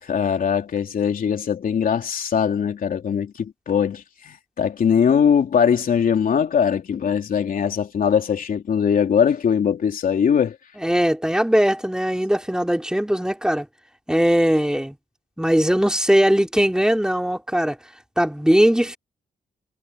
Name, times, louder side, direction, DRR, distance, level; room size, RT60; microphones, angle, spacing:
voice 1, 0.0-10.6, left 7 dB, 70° left, 3.3 m, -21 dB
voice 2, 10.8-13.7 14.1-14.9 15.4-17.8 18.2-19.0, equal, 5° right, 3.4 m, -19 dB
cardioid pair, 70°, 15 cm